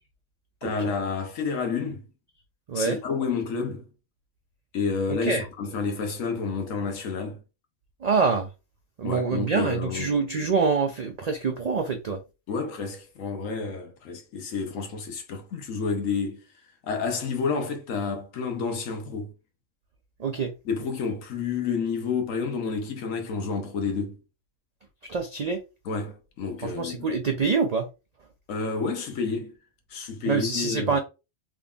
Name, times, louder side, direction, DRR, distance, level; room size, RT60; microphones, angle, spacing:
voice 1, 0.6-2.1 2.7-3.9 4.7-7.4 9.0-10.1 12.5-16.4 16.8-19.3 20.6-24.2 25.8-27.1 28.5-29.5 29.9-31.0, left 5 dB, 85° left, 1.2 m, -30 dB
voice 2, 2.7-3.0 5.2-5.4 8.0-8.5 9.0-12.2 20.2-20.5 25.1-25.6 26.6-27.9 30.3-31.0, right 5 dB, 70° right, 0.3 m, -25 dB
3.7 x 3.5 x 2.3 m
omnidirectional pair, 1.3 m